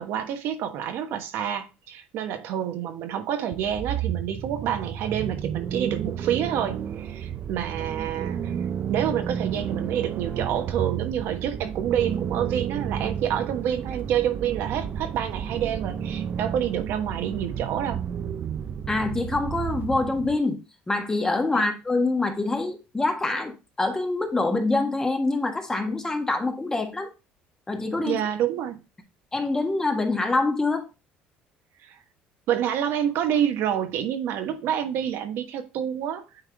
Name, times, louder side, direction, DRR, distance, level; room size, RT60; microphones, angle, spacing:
voice 1, 0.0-8.6 8.9-18.0 21.5-21.7 28.1-28.8 31.8-32.0 32.5-36.2, right 10 dB, 70° right, 1.3 m, -28 dB
sound 1, 3.5-20.4, right 8 dB, 45° right, 0.5 m, -32 dB
voice 2, 18.9-20.6 20.9-23.5 23.8-27.1 27.7-28.2 29.3-30.9, left 2 dB, 15° left, 1.4 m, -25 dB
8.9 x 3.6 x 3.5 m
cardioid pair, 105°, 4 cm